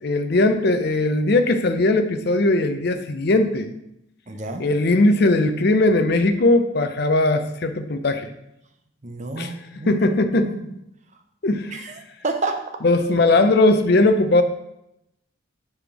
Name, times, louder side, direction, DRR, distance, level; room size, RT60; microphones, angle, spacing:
voice 1, 0.0-3.7 4.6-8.3 9.4-9.5 9.9-10.5 11.4-11.8 12.8-14.4, left 2 dB, 55° left, 9 dB, 0.6 m, -19 dB
voice 2, 4.3-4.6 9.0-10.1 10.3-10.7 11.7-12.6, right 3 dB, 35° right, 5 dB, 0.7 m, -29 dB
7.1 x 3.4 x 5.9 m, 0.82 s
head